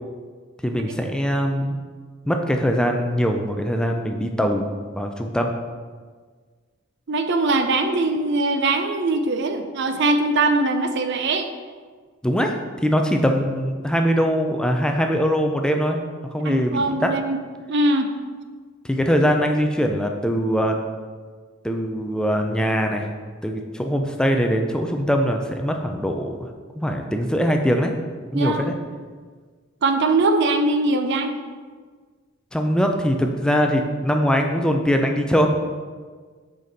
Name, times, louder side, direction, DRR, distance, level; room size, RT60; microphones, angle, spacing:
voice 1, 0.6-1.8 2.3-5.5 12.2-12.6 12.8-16.0 16.3-17.1 18.8-20.8 21.6-23.1 23.4-26.5 26.8-27.9 28.3-28.7 32.5-35.5, equal, 5° left, 4 dB, 0.4 m, -22 dB
voice 2, 7.1-11.5 16.4-17.4 17.7-18.1 28.3-28.7 29.8-31.3, right 2 dB, 60° right, 7 dB, 0.5 m, -21 dB
6.5 x 5.1 x 4.0 m, 1.5 s
head